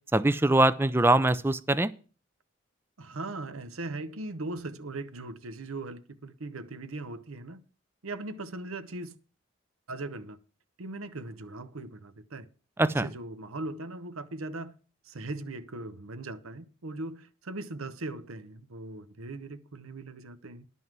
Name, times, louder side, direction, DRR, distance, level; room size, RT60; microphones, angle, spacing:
voice 1, 0.1-1.9 12.8-13.1, right 2 dB, 10° right, 0.4 m, -23 dB
voice 2, 3.0-7.6 8.0-9.1 9.9-10.4 10.8-12.5 12.9-14.8 15.0-20.6, right 2 dB, 85° right, 0.9 m, -39 dB
11.0 x 5.5 x 7.5 m
head